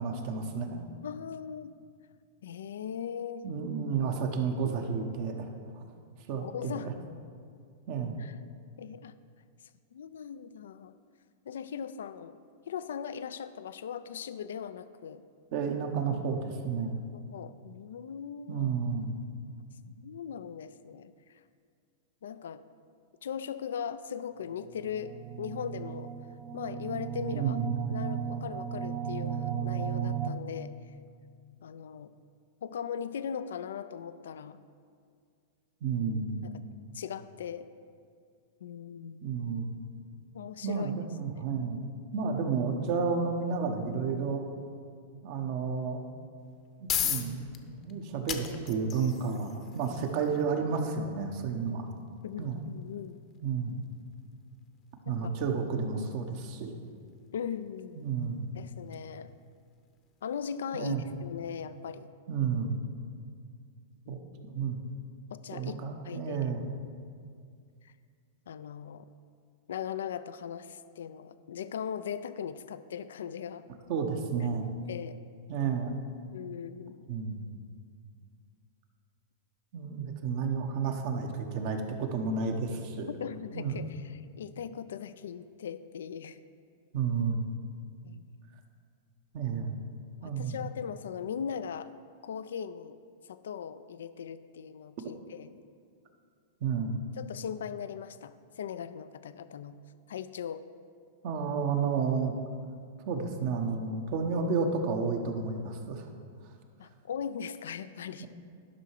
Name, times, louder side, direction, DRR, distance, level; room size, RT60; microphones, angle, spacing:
voice 1, 0.0-0.8 3.4-5.5 5.8-5.9 6.3-6.9 7.9-8.2 15.5-17.0 18.5-19.2 27.3-27.7 35.8-36.4 39.2-39.7 40.6-41.8 42.1-44.4 45.2-46.1 46.8-51.9 52.4-52.6 53.4-53.7 55.1-56.7 58.0-58.5 60.7-61.0 62.3-62.8 64.1-64.8 65.5-66.6 73.9-74.7 75.5-76.0 77.1-77.4 79.7-83.1 83.5-83.8 86.9-87.4 89.3-89.8 90.2-90.6 96.6-97.0 101.2-102.3 103.0-106.1 108.2-108.3, right 5 dB, 55° right, 4 dB, 1.1 m, -31 dB
voice 2, 1.0-1.7 2.4-3.5 6.3-6.9 8.2-8.3 8.8-9.1 9.9-10.9 11.5-12.4 12.7-15.2 17.1-18.7 19.8-21.1 22.2-22.6 23.2-26.1 26.5-27.6 27.9-30.7 31.6-32.1 32.6-34.6 36.4-36.5 36.9-37.7 38.6-39.2 40.3-40.9 41.3-41.4 52.2-53.2 55.0-55.1 57.3-58.0 58.5-59.3 60.2-62.1 64.1-64.2 65.3-66.4 67.8-67.9 68.5-69.0 69.7-73.6 74.9-75.2 76.3-77.0 83.2-84.0 84.4-86.4 88.0-88.3 90.2-91.9 92.2-93.0 93.3-95.5 97.2-99.8 100.1-100.6 106.8-108.3, left 8 dB, 75° left, 13 dB, 0.4 m, -39 dB
sound 1, 24.6-30.3, right 9 dB, 40° right, 0.6 m, -35 dB
sound 2, 46.4-61.3, left 9 dB, 35° left, 0.8 m, -41 dB
11.5 x 5.6 x 4.7 m, 2.2 s
hypercardioid pair, 110°, 0 cm